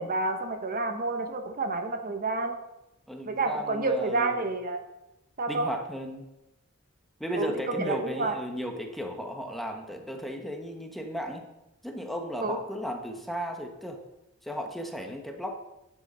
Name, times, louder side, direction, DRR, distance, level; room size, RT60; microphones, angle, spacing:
voice 1, 0.0-2.6 3.3-4.8 5.4-5.7 7.3-8.3 12.4-12.6, right 3 dB, 40° right, 6 dB, 1.0 m, -29 dB
voice 2, 3.1-4.5 5.5-6.3 7.2-11.4 11.8-14.0 14.4-15.6, equal, ahead, 3 dB, 1.2 m, -35 dB
11.5 x 7.8 x 5.5 m, 0.92 s
head